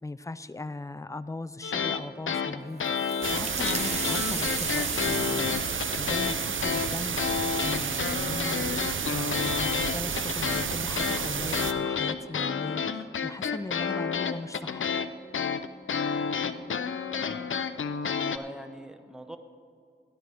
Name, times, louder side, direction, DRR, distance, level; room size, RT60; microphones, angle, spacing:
voice 1, 0.0-8.8 9.1-14.9, left 2 dB, 15° left, 14 dB, 0.5 m, -39 dB
sound 1, 1.6-2.0 2.3-6.4 6.6-18.4, left 6 dB, 80° left, 0.5 m, -30 dB
sound 2, 2.8-8.2, right 2 dB, 35° right, 1.1 m, -37 dB
sound 3, 3.2-11.7, right 6 dB, 80° right, 0.6 m, -31 dB
voice 2, 18.2-19.4, equal, 5° right, 7 dB, 0.9 m, -43 dB
16.5 x 11.0 x 3.5 m, 2.3 s
cardioid pair, 40°, 20 cm